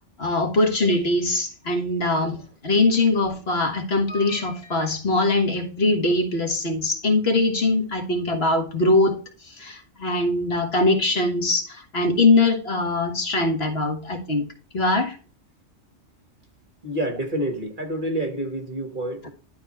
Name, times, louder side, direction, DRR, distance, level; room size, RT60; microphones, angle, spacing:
voice 1, 0.2-14.5 14.7-15.2, left 2 dB, 55° left, 1.8 m, -22 dB
voice 2, 16.8-19.3, right 1 dB, 40° right, 1.8 m, -28 dB
11.5 x 4.2 x 4.3 m
omnidirectional pair, 1.3 m